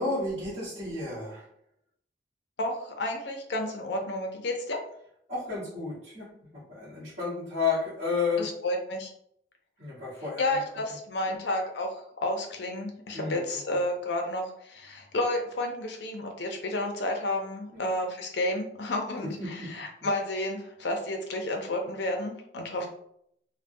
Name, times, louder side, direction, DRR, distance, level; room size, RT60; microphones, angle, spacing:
voice 1, 0.0-1.4 5.3-8.5 9.8-10.4 13.1-13.5 17.7-17.9 19.4-19.7 22.8-22.9, left 4 dB, 35° right, -13 dB, 1.3 m, -32 dB
voice 2, 2.6-4.8 8.4-9.1 10.2-22.9, left 1 dB, 75° left, 2 dB, 0.6 m, -31 dB
3.4 x 2.2 x 2.6 m, 0.72 s
head